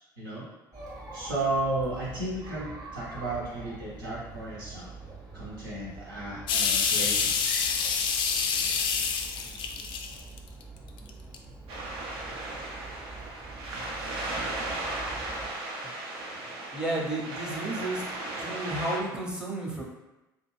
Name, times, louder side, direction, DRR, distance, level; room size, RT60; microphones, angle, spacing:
voice 1, 0.2-0.5 1.1-4.9 5.3-7.3, right 2 dB, 75° right, -7 dB, 0.9 m, -33 dB
Chatter, 0.7-15.5, right 3 dB, 35° right, 0.9 m, -45 dB
sound 1, 6.5-10.6 11.1-11.4, left 6 dB, 45° left, 0.3 m, -27 dB
sound 2, 11.7-19.0, right 2 dB, 55° right, 0.5 m, -36 dB
voice 2, 16.7-18.0 18.4-19.8, right 2 dB, 5° right, -3 dB, 0.8 m, -32 dB
2.5 x 2.4 x 3.2 m, 1.0 s
figure-of-eight pair, 55°, 11 cm